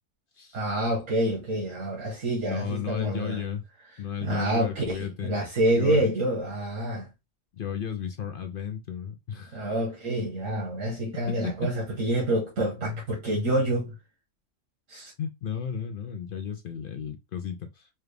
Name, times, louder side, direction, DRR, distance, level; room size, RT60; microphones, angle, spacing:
voice 1, 0.5-3.4 4.2-7.1 9.5-13.9 14.9-15.1, right 1 dB, 90° right, 1.7 m, -27 dB
voice 2, 2.4-3.6 4.0-5.3 5.8-6.1 7.5-9.8 11.3-11.7 15.2-17.9, left 8 dB, 60° left, 0.6 m, -34 dB
4.2 x 2.4 x 3.3 m
omnidirectional pair, 1.3 m